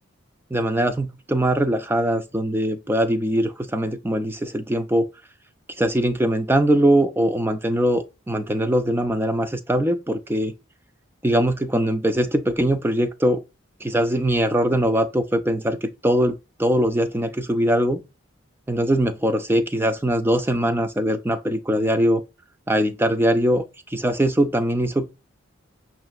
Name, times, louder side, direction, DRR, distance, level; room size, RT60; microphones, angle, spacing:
voice 1, 0.5-5.1 5.8-10.5 11.2-13.4 13.8-18.0 18.7-22.2 22.7-23.6 23.9-25.1, right 1 dB, 10° right, 0.4 m, -21 dB
5.1 x 3.0 x 2.4 m
head